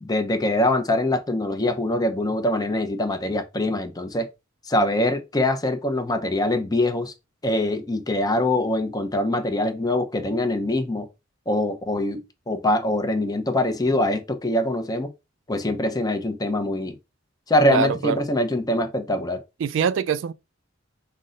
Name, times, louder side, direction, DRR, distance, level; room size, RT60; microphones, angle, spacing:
voice 1, 0.0-4.3 4.7-7.1 7.4-11.1 11.5-15.1 15.5-17.0 17.5-19.4, left 1 dB, 20° left, 0.6 m, -23 dB
voice 2, 17.7-18.2 19.6-20.3, right 6 dB, 70° right, 0.3 m, -23 dB
5.2 x 2.1 x 3.8 m
head